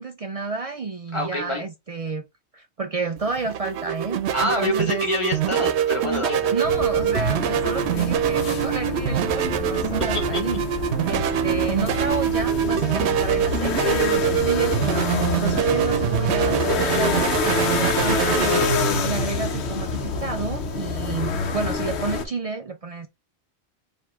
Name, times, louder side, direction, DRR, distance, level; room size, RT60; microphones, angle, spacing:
voice 1, 0.0-2.3 2.5-5.0 6.5-10.6 11.1-23.1, right 4 dB, 55° right, 0.4 m, -30 dB
voice 2, 1.1-1.6 4.3-6.5 10.3-10.4 11.3-11.4, left 1 dB, 30° left, 1.5 m, -26 dB
sound 1, 3.2-21.4, right 10 dB, 80° right, 0.9 m, -24 dB
sound 2, 6.6-22.3, left 5 dB, 80° left, 1.0 m, -27 dB
4.7 x 2.7 x 3.4 m
omnidirectional pair, 1.1 m